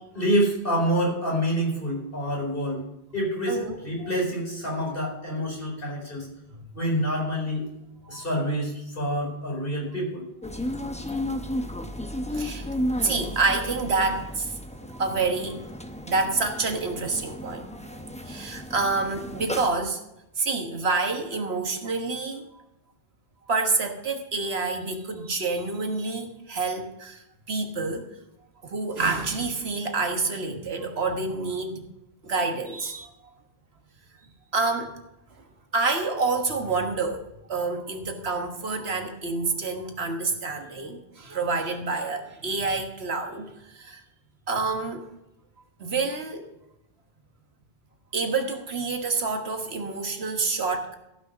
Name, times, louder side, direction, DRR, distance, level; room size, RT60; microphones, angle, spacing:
voice 1, 0.1-2.8 3.1-3.6 3.8-6.3 6.7-7.6 8.1-10.3, equal, 60° left, -2 dB, 4.5 m, -27 dB
sound 1, 10.4-19.7, left 1 dB, 5° left, 0.7 m, -34 dB
voice 2, 12.3-12.7 13.0-15.6 16.1-20.0 20.3-22.6 23.5-28.1 28.6-31.8 32.2-33.4 34.5-34.9 35.4-35.5 35.7-44.0 44.5-45.1 45.8-46.5 48.1-50.9, right 3 dB, 80° right, 4 dB, 1.7 m, -28 dB
15.0 x 6.3 x 6.2 m, 0.88 s
omnidirectional pair, 1.1 m